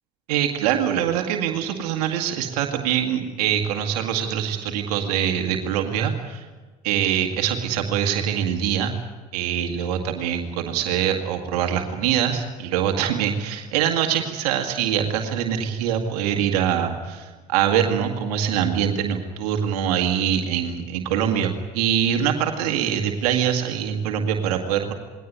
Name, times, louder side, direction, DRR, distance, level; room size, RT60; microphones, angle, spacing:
voice 1, 0.3-6.4 6.8-8.9 9.3-24.9, right 9 dB, 80° right, 4 dB, 2.0 m, -24 dB
20.5 x 18.0 x 9.3 m, 1.3 s
hypercardioid pair, 70°, 19 cm